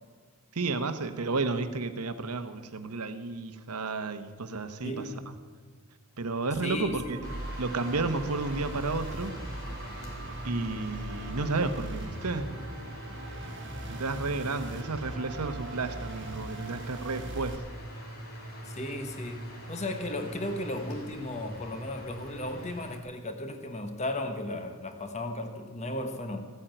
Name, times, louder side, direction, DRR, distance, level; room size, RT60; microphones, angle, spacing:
voice 1, 0.5-5.3 6.2-7.2 7.6-9.3 10.4-12.5 13.9-17.6, right 3 dB, 85° right, 9 dB, 1.1 m, -32 dB
voice 2, 4.8-5.3 6.6-7.2 18.7-26.4, left 1 dB, 30° left, 6 dB, 1.3 m, -35 dB
sound 1, 6.5-17.6, right 1 dB, 55° right, 1.4 m, -41 dB
sound 2, 7.2-23.0, equal, 70° left, 3.0 m, -43 dB
15.5 x 8.8 x 9.1 m, 1.5 s
head